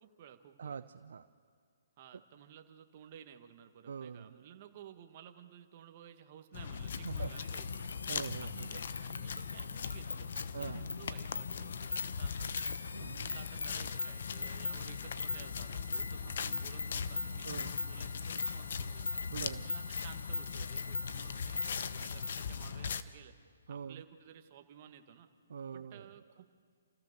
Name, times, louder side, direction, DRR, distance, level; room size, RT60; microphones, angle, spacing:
voice 1, 0.0-0.8 2.0-7.9 8.4-12.5 13.0-19.1 19.6-23.4 23.7-25.3 25.7-26.4, right 9 dB, 40° right, 6 dB, 1.7 m, -55 dB
voice 2, 0.6-1.3 3.9-4.4 7.0-7.3 8.1-8.7 10.5-11.0 12.9-13.4 17.4-17.7 19.3-19.7 23.7-24.0 25.5-26.1, right 7 dB, 70° right, 10 dB, 0.6 m, -43 dB
sound 1, 6.5-23.0, left 6 dB, 60° left, 1.0 m, -40 dB
sound 2, 6.9-22.5, left 4 dB, 90° left, 0.7 m, -42 dB
29.0 x 15.0 x 6.8 m, 2.1 s
hypercardioid pair, 145°, 0 cm